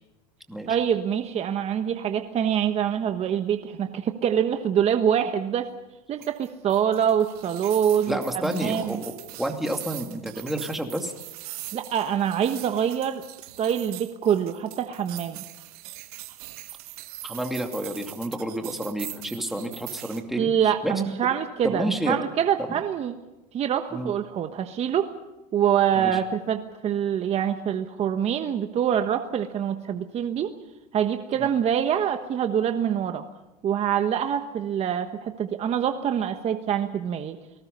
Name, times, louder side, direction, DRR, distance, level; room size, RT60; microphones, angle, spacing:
voice 1, 0.7-5.7 6.1-9.0 11.7-13.2 13.6-15.4 20.4-23.1 23.5-25.1 25.5-30.5 30.9-33.2 33.6-37.4, right 9 dB, 35° right, 7 dB, 1.2 m, -25 dB
sound 1, 6.2-20.2, right 16 dB, 80° right, 1.5 m, -42 dB
voice 2, 8.1-11.1 17.2-21.1 21.6-22.2 23.9-24.1 26.0-26.2 31.4-31.5, right 1 dB, ahead, 3 dB, 2.6 m, -30 dB
30.0 x 19.0 x 5.5 m, 0.98 s
supercardioid pair, 115°, 19 cm